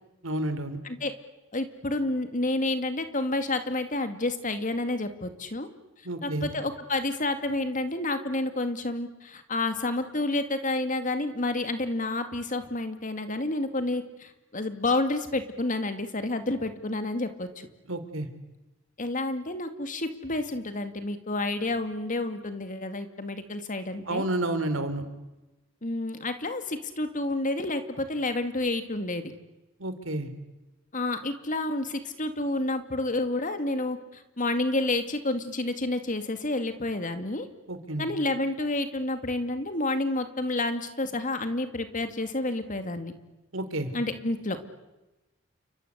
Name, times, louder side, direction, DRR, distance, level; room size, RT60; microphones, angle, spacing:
voice 1, 0.2-0.8 6.0-6.5 17.9-18.3 24.0-25.0 29.8-30.3 37.7-38.1 43.5-43.9, right 1 dB, 85° right, 10 dB, 3.3 m, -30 dB
voice 2, 1.5-5.7 6.2-17.7 19.0-24.3 25.8-29.3 30.9-37.5 38.0-43.1 43.9-44.6, left 2 dB, 40° left, 9 dB, 2.4 m, -29 dB
29.5 x 24.5 x 8.2 m, 1.0 s
head